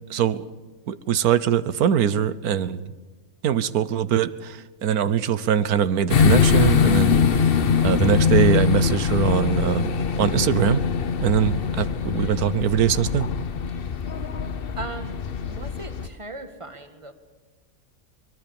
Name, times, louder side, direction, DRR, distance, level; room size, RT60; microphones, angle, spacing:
voice 1, 0.1-0.4 0.9-2.9 3.4-10.8 11.2-13.3, right 9 dB, 90° right, 15 dB, 1.4 m, -22 dB
sound 1, 6.1-16.1, left 6 dB, 45° left, 1.0 m, -22 dB
voice 2, 14.8-17.1, right 2 dB, 20° right, 8 dB, 1.9 m, -38 dB
23.5 x 21.5 x 7.1 m, 1.3 s
omnidirectional pair, 1.5 m